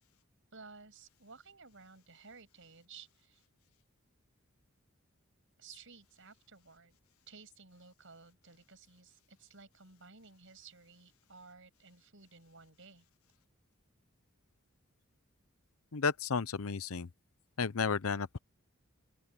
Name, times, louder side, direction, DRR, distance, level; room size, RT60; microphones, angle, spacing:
voice 1, 0.5-3.4 5.6-7.0 7.3-13.1, right 4 dB, 65° right, 7.7 m, -56 dB
voice 2, 15.9-17.1 17.6-18.4, left 5 dB, 90° left, 0.8 m, -32 dB
open air
head